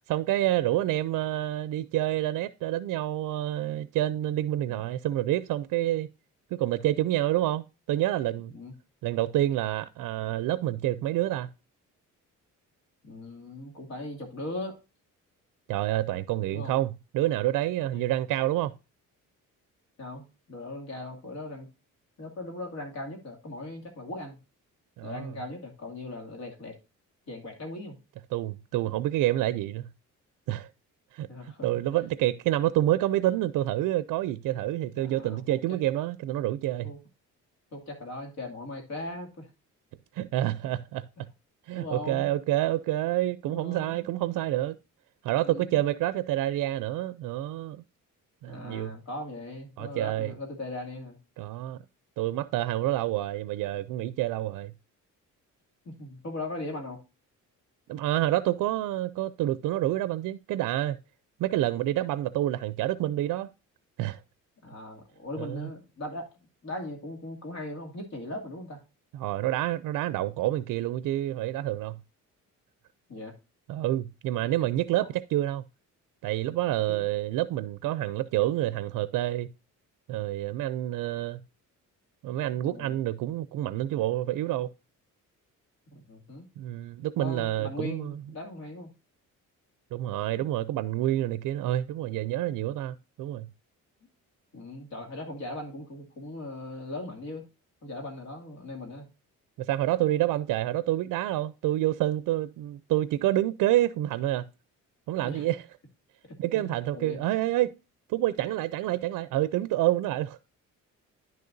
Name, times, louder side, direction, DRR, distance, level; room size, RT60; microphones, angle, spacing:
voice 1, 0.1-6.1 6.5-8.5 9.0-11.5 15.7-18.7 25.0-25.3 28.3-29.8 30.5-30.7 31.1-36.9 40.1-41.1 41.7-44.8 45.2-47.8 48.4-48.9 49.8-50.3 51.4-51.8 52.2-54.7 57.9-61.0 61.4-63.5 64.0-64.2 65.4-65.7 69.1-72.0 73.7-75.6 76.2-79.5 80.1-81.4 82.2-84.7 86.6-88.1 89.9-93.5 99.6-104.5 105.1-105.6 106.4-107.7 108.1-110.6, right 14 dB, 80° right, 0.5 m, -28 dB
voice 2, 13.0-14.8 16.5-16.8 17.9-18.1 20.0-21.7 22.2-24.4 25.0-26.8 27.3-28.0 31.3-31.7 35.0-35.6 36.8-37.0 37.7-39.5 41.7-42.3 43.5-44.1 45.4-45.8 48.5-51.2 55.9-57.0 64.6-66.3 66.6-68.8 73.1-73.3 74.4-74.5 74.9-75.1 76.9-77.0 82.5-83.0 85.9-86.4 87.2-88.9 90.3-90.4 94.5-97.5 97.8-99.1 105.2-105.5 106.3-107.2, left 2 dB, 55° left, 2.4 m, -39 dB
10.5 x 6.6 x 2.6 m
cardioid pair, 155°, 32 cm